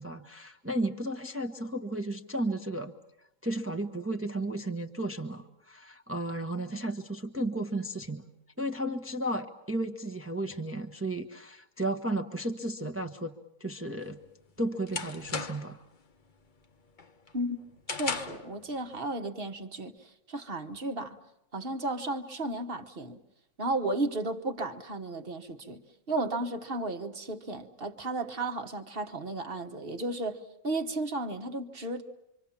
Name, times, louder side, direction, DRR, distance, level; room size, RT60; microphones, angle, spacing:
voice 1, 0.0-2.9 3.4-8.2 8.6-13.3 13.6-14.2 14.6-15.8, right 1 dB, 10° right, 1.0 m, -33 dB
sound 1, 14.0-15.8 16.2-16.6 17.0-18.5, left 4 dB, 35° left, 1.2 m, -37 dB
voice 2, 17.9-21.2 21.5-23.2 23.6-25.8 26.1-32.0, right 2 dB, 45° right, 1.5 m, -34 dB
26.0 x 25.5 x 7.3 m
omnidirectional pair, 1.5 m